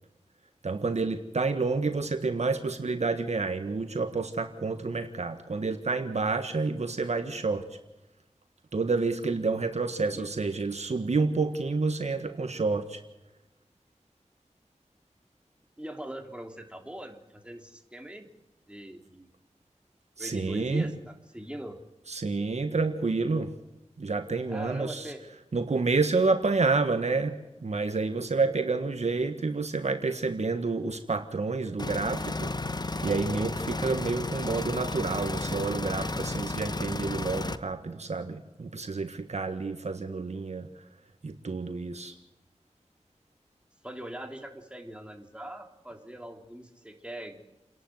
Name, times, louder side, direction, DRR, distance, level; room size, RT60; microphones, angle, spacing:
voice 1, 0.6-7.6 8.7-13.0 20.2-20.9 22.1-23.5 24.0-25.1 25.5-32.5 33.0-40.7 41.2-42.1, right 3 dB, 70° right, 7 dB, 1.6 m, -29 dB
voice 2, 15.8-18.3 18.7-19.3 20.2-21.8 24.5-25.3 43.8-47.4, right 1 dB, 10° right, 3 dB, 3.3 m, -41 dB
sound 1, 31.8-37.6, left 2 dB, 35° left, 1.0 m, -33 dB
29.5 x 11.5 x 7.9 m, 0.98 s
wide cardioid pair, 50°, 12 cm